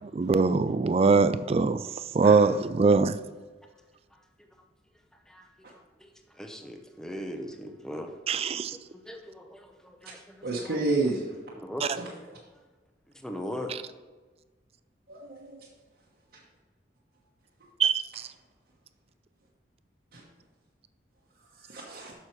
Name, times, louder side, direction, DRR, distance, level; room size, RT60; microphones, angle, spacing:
voice 1, 0.0-3.2 8.3-8.8 11.8-12.0 13.7-13.8 17.8-18.3, right 4 dB, 35° right, 0.3 m, -23 dB
voice 2, 6.4-8.1 9.1-10.5 11.6-11.9 13.2-13.7, left 1 dB, 5° left, 0.7 m, -38 dB
voice 3, 10.4-11.2 11.9-12.1 15.1-15.6 20.1-20.2 21.6-22.1, right 2 dB, 55° right, 1.1 m, -30 dB
7.3 x 6.4 x 4.6 m
head